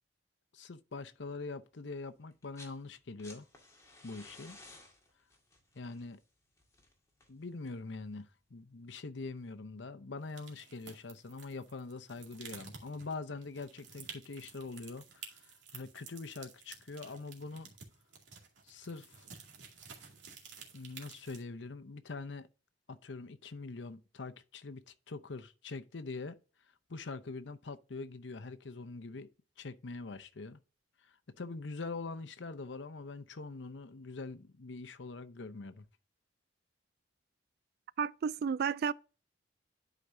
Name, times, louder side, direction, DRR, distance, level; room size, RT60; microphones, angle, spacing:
voice 1, 0.5-3.5 4.0-4.6 5.7-6.2 7.3-17.7 18.6-19.3 20.7-22.5 22.9-26.4 26.9-29.3 29.6-30.6 31.0-35.8, left 3 dB, 75° left, 0.7 m, -44 dB
sound 1, 2.3-2.8 3.0-7.9 9.2-9.3, left 2 dB, 15° left, 1.9 m, -56 dB
sound 2, 10.3-21.4, right 6 dB, 85° right, 2.2 m, -52 dB
voice 2, 38.0-38.9, right 6 dB, 55° right, 0.3 m, -32 dB
11.5 x 5.0 x 2.6 m
head